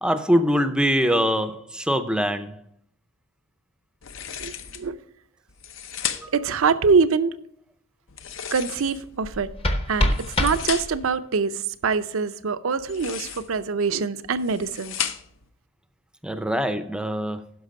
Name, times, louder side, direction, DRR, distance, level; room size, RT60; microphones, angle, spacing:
voice 1, 0.0-2.6 6.2-6.3 16.2-17.5, equal, 5° right, 0.5 m, -23 dB
sound 1, 4.0-4.9 5.5-6.5 8.1-9.2 10.0-11.1 12.8-13.6 14.2-15.5, left 9 dB, 65° left, 0.7 m, -34 dB
voice 2, 4.4-5.0 6.3-7.3 8.5-9.5 9.9-14.9, right 5 dB, 75° right, 0.6 m, -24 dB
sound 2, 9.2-11.2, left 1 dB, 25° left, 0.8 m, -26 dB
10.0 x 6.1 x 5.2 m
head